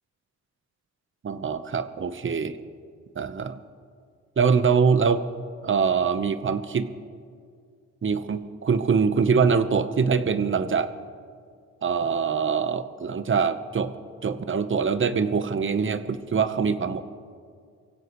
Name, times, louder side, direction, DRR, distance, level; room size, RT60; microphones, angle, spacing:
voice 1, 1.2-2.6 3.2-3.6 4.4-5.2 5.6-6.9 8.0-10.9 11.8-13.9 14.2-17.0, right 5 dB, 40° right, 11 dB, 1.1 m, -23 dB
23.5 x 16.5 x 3.2 m, 2.2 s
cardioid pair, 70°, 31 cm